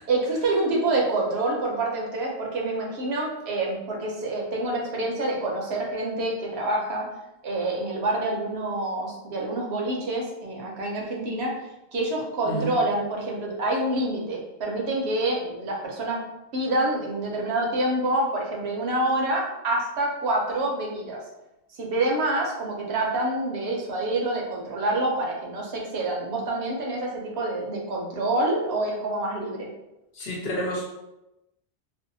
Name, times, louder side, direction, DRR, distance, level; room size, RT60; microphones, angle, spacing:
voice 1, 0.1-7.1 7.4-11.5 11.9-16.2 16.5-21.2 21.8-29.7, right 2 dB, 70° right, -1 dB, 0.8 m, -27 dB
voice 2, 12.4-12.8 30.1-30.8, equal, 65° left, -3 dB, 0.9 m, -30 dB
2.6 x 2.0 x 2.6 m, 0.92 s
omnidirectional pair, 1.2 m